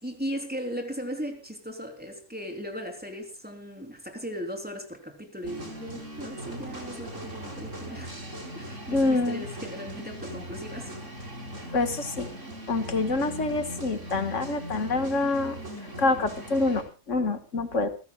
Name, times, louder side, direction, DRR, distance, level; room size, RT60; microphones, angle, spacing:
voice 1, 0.0-8.2 8.5-11.0, equal, 5° right, 3.4 m, -37 dB
sound 1, 5.4-16.8, equal, 85° right, 5.2 m, -39 dB
voice 2, 8.9-9.4 11.7-12.3 12.7-15.6 16.0-17.9, left 3 dB, 85° left, 2.0 m, -26 dB
28.0 x 15.0 x 2.3 m
omnidirectional pair, 1.2 m